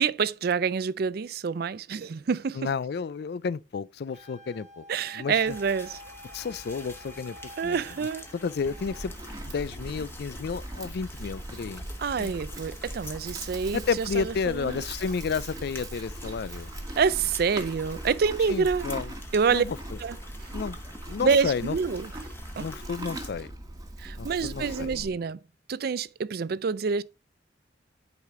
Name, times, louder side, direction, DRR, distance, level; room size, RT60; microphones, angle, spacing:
voice 1, 0.0-2.7 4.9-6.0 7.6-8.2 12.0-14.8 17.0-18.9 19.3-19.7 20.0-20.2 21.2-22.1 22.6-22.7 24.0-25.4 25.7-27.0, right 5 dB, 60° right, 0.4 m, -27 dB
voice 2, 2.6-4.8 5.1-5.4 6.3-7.4 7.6-7.8 8.3-9.1 9.4-11.8 12.2-12.3 13.7-16.7 18.5-19.1 19.5-19.8 20.5-20.8 21.1-21.8 22.6-23.5 24.2-25.1, left 5 dB, 65° left, 0.4 m, -31 dB
Wind instrument woodwind instrument, 4.1-9.1, equal, 45° right, 1.3 m, -49 dB
sound 1, 5.4-23.3, left 1 dB, 15° left, 1.3 m, -47 dB
Livestock farm animals working animals, 8.6-25.1, right 1 dB, 20° right, 1.3 m, -40 dB
9.6 x 5.0 x 3.6 m
head